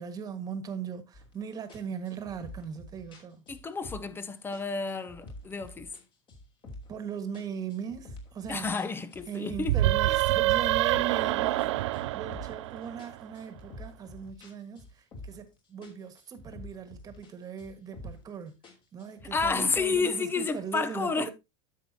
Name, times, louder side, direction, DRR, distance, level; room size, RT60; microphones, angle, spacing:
voice 1, 0.0-3.4 6.9-8.7 9.3-11.7 12.1-18.6 18.9-21.3, right 7 dB, 25° right, 1.6 m, -39 dB
sound 1, 1.1-1.4 1.7-4.2 4.5-6.0 6.3-7.0 7.3-9.8 10.2-12.7 13.0-15.5 15.8-17.3 17.6-18.3 18.6-20.1, left 1 dB, 35° left, 2.9 m, -47 dB
voice 2, 3.5-5.9 8.5-9.8 19.2-21.3, left 4 dB, 15° left, 0.7 m, -30 dB
sound 2, 9.6-13.2, right 16 dB, 80° right, 0.4 m, -26 dB
10.5 x 7.3 x 2.8 m
supercardioid pair, 135°, 15 cm